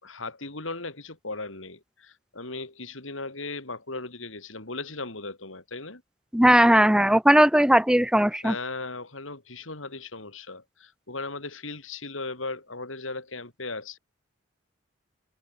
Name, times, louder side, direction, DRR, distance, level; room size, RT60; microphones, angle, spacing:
voice 1, 0.0-6.0 8.4-14.0, left 3 dB, 80° left, 5.1 m, -37 dB
voice 2, 6.3-8.5, right 1 dB, 5° right, 1.1 m, -18 dB
open air
head